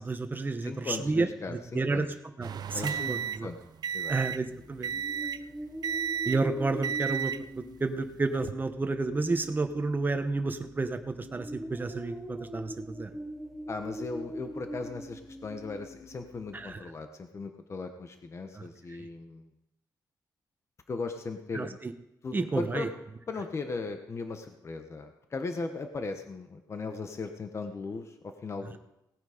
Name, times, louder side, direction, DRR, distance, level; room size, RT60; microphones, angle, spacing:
voice 1, 0.0-2.1 2.4-3.5 4.1-4.9 6.2-7.3 7.8-13.1 16.5-16.8 18.5-18.6 21.5-21.9 22.3-22.9, right 3 dB, 25° right, 7 dB, 1.2 m, -31 dB
voice 2, 0.6-2.1 2.7-3.1 3.4-3.6 3.9-4.1 13.7-19.5 20.9-21.8 22.2-22.9 23.3-28.8, left 3 dB, 40° left, 6 dB, 1.2 m, -37 dB
sound 1, 2.4-4.5 4.8-5.5 5.8-6.5 6.8-7.5 8.2-8.5, right 7 dB, 70° right, 0.6 m, -33 dB
sound 2, 4.1-16.7, right 1 dB, 5° left, 3.0 m, -43 dB
18.0 x 8.9 x 5.1 m, 0.88 s
wide cardioid pair, 115°, 7 cm